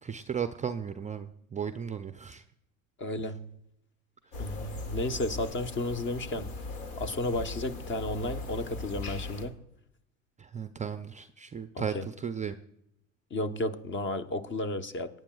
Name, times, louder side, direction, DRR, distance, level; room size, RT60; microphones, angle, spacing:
voice 1, 0.0-2.4 10.4-12.6, right 7 dB, 20° right, 10 dB, 0.4 m, -35 dB
voice 2, 3.0-3.5 4.4-6.5 7.0-9.6 11.7-12.0 13.3-15.1, left 1 dB, 30° left, 10 dB, 1.0 m, -33 dB
sound 1, 4.3-9.5, left 3 dB, 70° left, 2.3 m, -39 dB
18.5 x 9.2 x 2.3 m, 0.75 s
hypercardioid pair, 80°, 40 cm